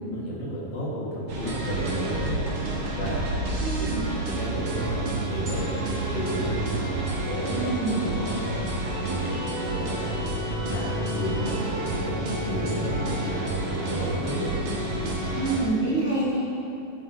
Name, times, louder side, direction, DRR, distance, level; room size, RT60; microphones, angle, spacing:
voice 1, 0.1-2.4 3.0-3.4 3.8-5.0 5.3-6.6 7.1-8.6 8.8-10.3 10.7-12.2 12.5-14.5, equal, 50° left, -5 dB, 2.4 m, -33 dB
sound 1, 1.3-15.6, right 2 dB, 60° right, 1.4 m, -29 dB
voice 2, 3.6-4.1 7.5-8.0 15.4-16.4, right 3 dB, 75° right, -10 dB, 0.5 m, -26 dB
13.5 x 8.9 x 2.7 m, 2.9 s
omnidirectional pair, 4.1 m